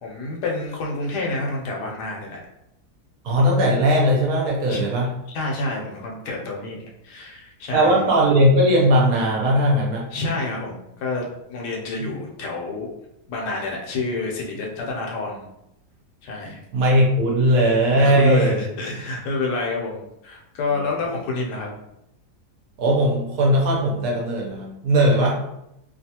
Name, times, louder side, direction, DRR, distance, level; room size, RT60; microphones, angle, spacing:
voice 1, 0.0-2.4 4.7-4.9 5.3-8.0 10.1-12.9 13.3-15.5 16.2-16.6 17.9-21.7 25.1-25.3, left 2 dB, 85° left, -2 dB, 1.3 m, -28 dB
voice 2, 3.2-5.1 7.7-10.0 16.7-18.6 22.8-25.3, equal, 70° right, -2 dB, 1.2 m, -18 dB
3.1 x 2.3 x 2.8 m, 0.83 s
omnidirectional pair, 1.7 m